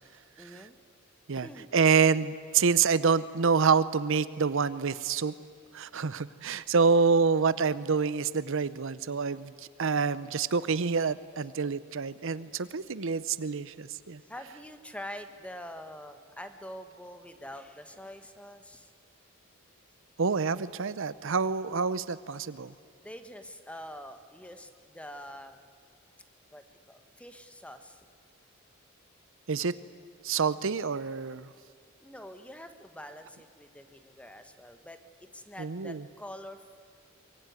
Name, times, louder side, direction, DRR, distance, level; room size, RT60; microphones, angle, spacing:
voice 1, 0.4-0.8 1.3-1.7 14.2-18.9 23.0-25.7 26.5-28.0 32.0-35.0 35.3-36.6, equal, 5° left, 8 dB, 1.4 m, -45 dB
voice 2, 1.7-5.3 5.7-9.5 9.8-14.2 20.2-22.7 29.5-29.7 30.2-31.5 35.6-36.0, right 5 dB, 65° right, 16 dB, 0.7 m, -27 dB
24.0 x 22.5 x 9.5 m, 2.4 s
head